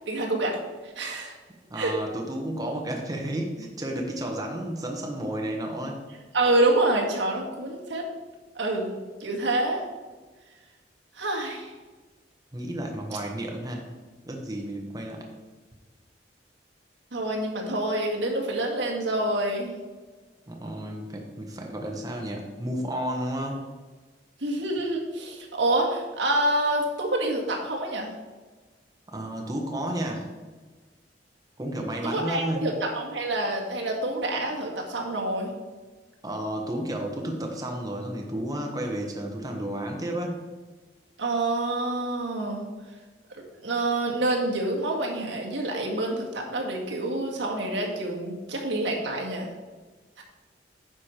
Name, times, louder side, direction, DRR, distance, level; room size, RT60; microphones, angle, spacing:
voice 1, 0.1-0.6 0.8-1.4 1.8-1.9 6.3-8.0 8.6-8.9 9.2-9.8 11.2-11.7 17.1-19.7 24.4-28.1 32.0-35.5 41.2-42.7 43.3-49.5 50.2-50.3, right 2 dB, 85° right, -1 dB, 1.8 m, -27 dB
voice 2, 1.7-6.0 12.5-13.8 14.3-15.2 20.5-23.6 29.1-30.3 31.6-32.7 36.2-40.4, right 1 dB, 20° right, 1 dB, 1.1 m, -32 dB
9.7 x 6.3 x 4.4 m, 1.3 s
head